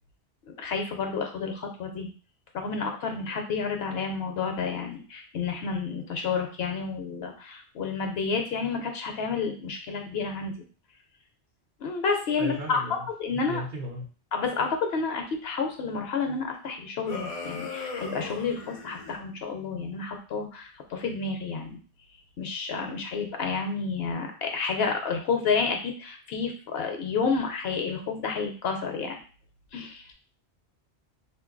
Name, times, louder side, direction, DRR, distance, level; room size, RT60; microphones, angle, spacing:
voice 1, 0.5-2.1 2.5-10.5 11.8-13.6 14.3-21.8 22.4-29.2 29.7-30.1, left 5 dB, 70° left, 4 dB, 0.8 m, -30 dB
voice 2, 12.4-14.1, right 1 dB, 55° right, 1 dB, 0.7 m, -36 dB
sound 1, 17.0-19.2, left 4 dB, 45° left, 0.5 m, -37 dB
2.5 x 2.3 x 3.7 m, 0.38 s
omnidirectional pair, 1.1 m